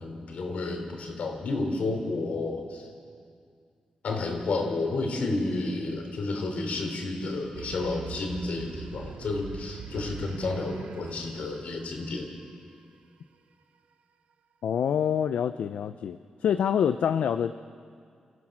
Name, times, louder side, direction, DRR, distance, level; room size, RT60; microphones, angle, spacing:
voice 1, 0.0-2.9 4.0-12.3, left 3 dB, 75° left, 3 dB, 3.7 m, -31 dB
sound 1, 7.5-12.5, right 7 dB, 80° right, 0.8 m, -42 dB
voice 2, 14.6-17.6, left 8 dB, 90° left, 11 dB, 0.5 m, -26 dB
29.0 x 15.0 x 6.2 m, 2.2 s
wide cardioid pair, 120°, 2 cm